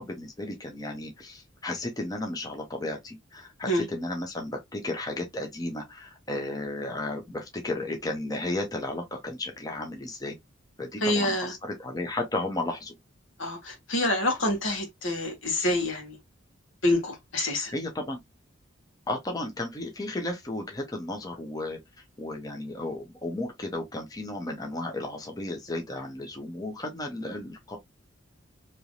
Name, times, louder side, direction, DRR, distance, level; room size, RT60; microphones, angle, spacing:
voice 1, 0.0-10.4 10.8-12.9 17.5-18.2 19.1-21.8 22.2-27.8, left 2 dB, 20° left, 0.7 m, -34 dB
voice 2, 11.0-11.5 13.4-16.2 16.8-17.7, left 1 dB, 75° left, 1.4 m, -27 dB
3.3 x 2.9 x 2.5 m
head